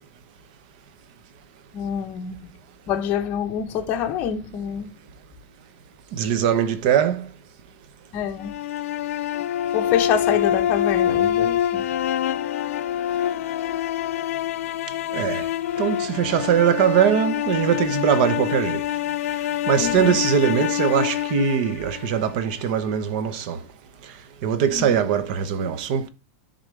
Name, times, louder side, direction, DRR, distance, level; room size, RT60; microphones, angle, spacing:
voice 1, 1.7-2.4 2.9-4.9 8.1-8.6 9.7-11.8 19.8-20.2 24.6-25.0, left 8 dB, 25° left, 0.8 m, -26 dB
voice 2, 6.1-7.3 15.1-15.4 15.8-18.8 19.7-23.6 24.4-26.1, right 8 dB, 40° right, 0.8 m, -21 dB
sound 1, 8.4-22.5, left 11 dB, 75° left, 0.3 m, -26 dB
10.0 x 3.7 x 3.2 m
supercardioid pair, 180°, 8 cm